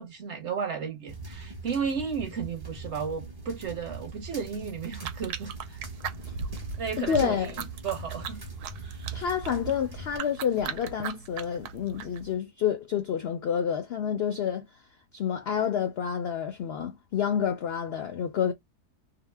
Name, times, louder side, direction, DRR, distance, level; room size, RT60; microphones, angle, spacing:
voice 1, 0.0-5.8 6.8-7.5 7.8-8.4 8.8-9.3, right 6 dB, 55° right, 1.0 m, -34 dB
sound 1, 1.1-10.2, right 3 dB, 30° right, 0.4 m, -41 dB
sound 2, 4.8-12.4, right 6 dB, 90° right, 1.1 m, -39 dB
voice 2, 7.0-7.5 9.1-14.7 15.1-18.5, left 8 dB, 75° left, 0.5 m, -29 dB
2.8 x 2.0 x 3.2 m
omnidirectional pair, 1.6 m